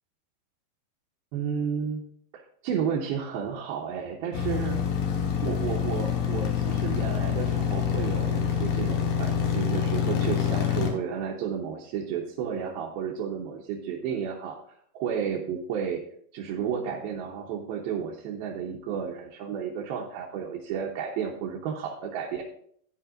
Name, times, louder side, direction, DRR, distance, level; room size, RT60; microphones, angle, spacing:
voice 1, 1.3-2.0 2.3-4.8 5.4-14.6 14.9-16.0 16.3-22.4, right 7 dB, 85° right, -2 dB, 2.8 m, -32 dB
sound 1, 4.3-10.9, left 8 dB, 70° left, 2.8 m, -26 dB
13.0 x 9.5 x 2.5 m, 0.63 s
omnidirectional pair, 4.3 m